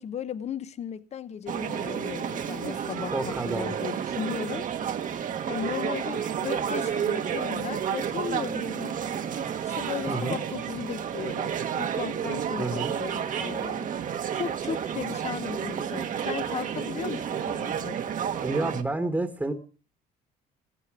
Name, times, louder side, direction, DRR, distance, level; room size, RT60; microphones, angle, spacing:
voice 1, 0.0-4.7 5.5-9.0 9.6-13.9 14.3-18.0, left 8 dB, 40° left, 0.8 m, -36 dB
sound 1, 1.5-18.8, right 8 dB, 50° right, 1.4 m, -31 dB
voice 2, 3.1-3.7 10.1-10.4 12.6-12.9 18.4-19.5, right 2 dB, 10° right, 1.4 m, -29 dB
16.0 x 13.5 x 4.9 m
cardioid pair, 110°, 17 cm